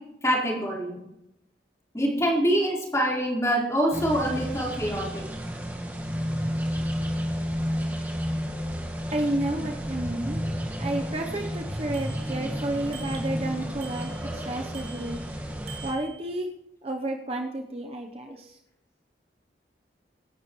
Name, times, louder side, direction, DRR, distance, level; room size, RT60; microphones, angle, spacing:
voice 1, 0.2-0.9 1.9-5.2, equal, 15° left, -4 dB, 4.0 m, -25 dB
sound 1, 3.9-15.9, equal, 10° right, 1.5 m, -31 dB
voice 2, 9.1-10.4 10.8-15.2 15.8-16.5 16.8-18.6, right 1 dB, 35° right, 2 dB, 0.8 m, -31 dB
Bicycle bell, 11.9-12.5 12.9-13.4 13.8-14.4 14.7-15.3 15.7-16.4, right 6 dB, 55° right, 3.2 m, -46 dB
25.0 x 10.5 x 3.1 m, 0.89 s
head